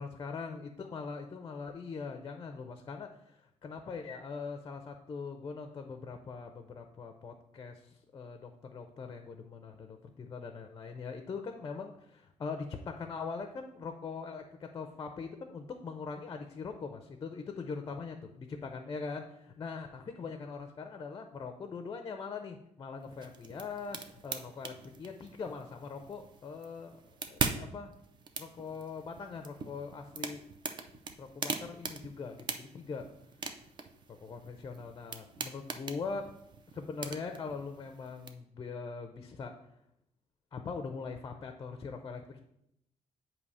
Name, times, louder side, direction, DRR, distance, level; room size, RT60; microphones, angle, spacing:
voice 1, 0.0-27.9 28.4-30.4 31.2-33.1 34.1-36.3 36.7-39.6 40.5-42.4, left 5 dB, 30° left, 6 dB, 0.5 m, -42 dB
sound 1, 23.0-38.3, right 5 dB, 35° right, 0.5 m, -42 dB
8.3 x 2.8 x 5.4 m, 0.78 s
cardioid pair, 165°, 13 cm